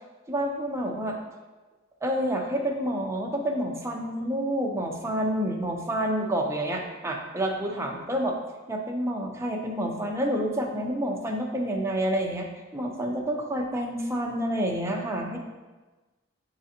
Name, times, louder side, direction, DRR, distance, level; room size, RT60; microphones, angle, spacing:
voice 1, 0.3-1.2 2.0-8.4 8.7-12.5 12.7-15.4, equal, 15° right, 0 dB, 0.7 m, -28 dB
9.2 x 3.9 x 2.8 m, 1.2 s
head